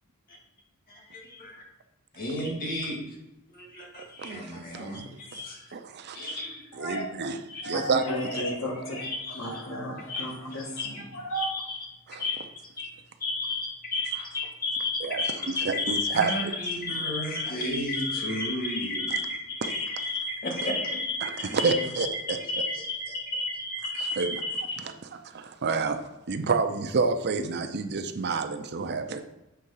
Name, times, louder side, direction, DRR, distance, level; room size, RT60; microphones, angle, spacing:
voice 1, 1.1-1.5 2.1-3.0 3.5-5.7 6.1-6.6 7.5-7.6 9.2-9.5 10.1-10.3 10.8-10.9 11.3-11.8 12.2-12.4 12.8-12.9 13.2-24.8, left 2 dB, 45° left, -1 dB, 1.9 m, -32 dB
voice 2, 5.7-6.3 6.8-7.4 7.6-8.0 12.1-12.2 15.0-15.2 15.5-16.3 19.1-19.2 19.6-19.8 20.6-20.7 21.2-22.4 24.0-24.4 24.8-24.9 25.3-26.0 26.3-29.2, right 4 dB, 50° right, 7 dB, 0.6 m, -29 dB
voice 3, 6.7-7.0 7.6-11.5, equal, 60° left, -1 dB, 1.9 m, -33 dB
7.8 x 3.7 x 5.6 m, 0.97 s
head